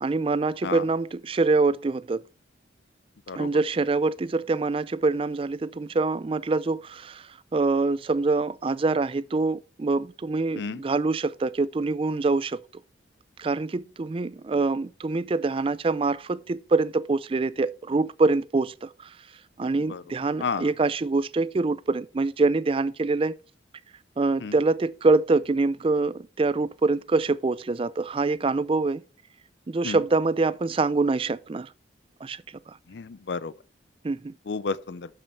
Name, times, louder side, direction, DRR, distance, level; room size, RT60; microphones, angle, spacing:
voice 1, 0.0-2.2 3.3-12.6 13.4-19.1 19.6-23.4 24.2-29.0 29.7-31.7 32.2-32.8 34.0-34.3, right 3 dB, 30° right, 0.4 m, -25 dB
voice 2, 32.9-33.5 34.5-35.1, left 4 dB, 65° left, 0.5 m, -31 dB
12.0 x 5.5 x 4.2 m
head